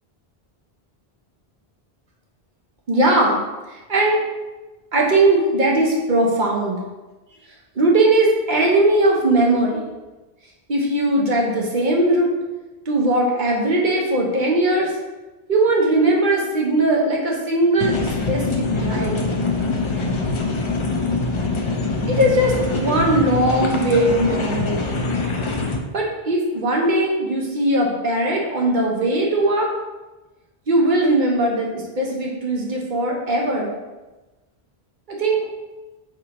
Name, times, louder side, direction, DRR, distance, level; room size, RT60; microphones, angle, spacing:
voice 1, 2.9-3.4 3.7-4.2 4.9-6.8 7.8-9.9 10.7-12.3 12.9-14.9 15.5-19.2 22.1-24.9 25.9-29.7 30.7-33.7 35.1-35.5, right 1 dB, 50° right, -1 dB, 0.8 m, -19 dB
sound 1, 17.8-25.8, left 3 dB, 50° left, 0.3 m, -23 dB
4.7 x 3.6 x 2.9 m, 1.1 s
omnidirectional pair, 1.1 m